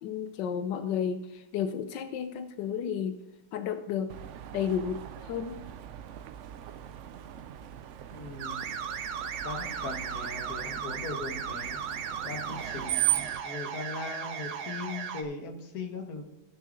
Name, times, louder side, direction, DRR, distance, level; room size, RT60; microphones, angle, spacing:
voice 1, 0.0-3.2 3.5-4.1 4.5-5.6, left 8 dB, 90° left, 9 dB, 1.3 m, -32 dB
Screech, 4.1-13.4, right 13 dB, 85° right, 0.6 m, -37 dB
voice 2, 8.1-8.7 9.4-11.8 12.2-16.2, left 3 dB, 60° left, 4 dB, 1.7 m, -39 dB
sound 1, 8.4-15.2, right 7 dB, 70° right, 1.3 m, -36 dB
16.0 x 6.5 x 3.8 m, 0.93 s
omnidirectional pair, 1.9 m